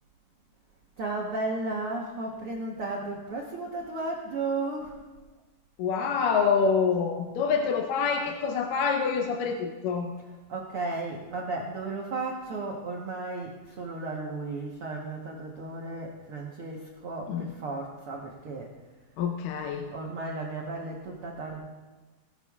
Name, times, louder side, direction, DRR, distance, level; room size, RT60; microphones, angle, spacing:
voice 1, 1.0-5.0 10.2-18.7 19.9-21.6, right 3 dB, 75° right, -2 dB, 1.2 m, -34 dB
voice 2, 5.8-10.1 17.3-17.5 19.2-19.8, left 5 dB, 75° left, 3 dB, 2.2 m, -26 dB
18.5 x 13.0 x 2.4 m, 1.3 s
omnidirectional pair, 4.3 m